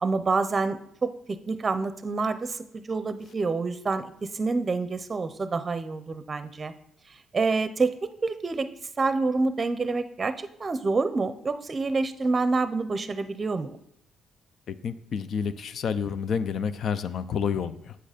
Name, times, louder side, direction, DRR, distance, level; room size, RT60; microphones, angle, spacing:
voice 1, 0.0-6.7 7.3-8.7 9.0-13.8, right 3 dB, 35° right, 11 dB, 0.6 m, -27 dB
voice 2, 14.7-18.0, left 6 dB, 60° left, 13 dB, 0.5 m, -29 dB
7.9 x 6.4 x 5.1 m, 0.73 s
cardioid pair, 90°, 0 cm